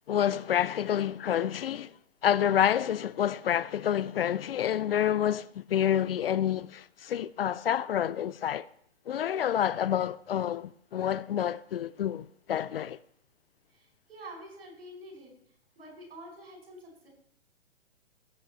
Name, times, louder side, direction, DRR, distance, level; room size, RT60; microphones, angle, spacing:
voice 1, 0.1-2.0 2.2-8.7 9.1-13.0, left 10 dB, 60° left, 0.5 m, -28 dB
voice 2, 13.7-15.3 15.7-17.1, right 1 dB, 65° right, 5.1 m, -47 dB
16.0 x 5.8 x 4.2 m
figure-of-eight pair, 120°, 33 cm